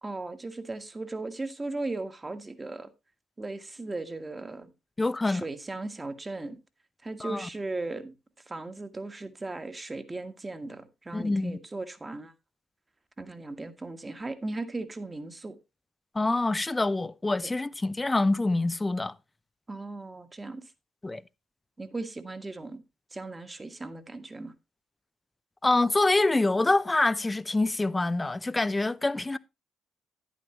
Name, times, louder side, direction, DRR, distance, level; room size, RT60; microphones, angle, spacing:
voice 1, 0.0-2.9 3.4-4.7 5.2-6.6 7.0-8.1 8.5-12.3 13.2-15.6 17.4-17.5 19.7-20.6 21.8-22.8 23.1-24.5, right 2 dB, 25° right, 1.5 m, -37 dB
voice 2, 5.0-5.4 7.2-7.5 11.1-11.6 16.1-19.1 21.0-21.2 25.6-29.4, left 2 dB, 20° left, 0.6 m, -26 dB
10.5 x 9.3 x 3.0 m
hypercardioid pair, 45°, 0 cm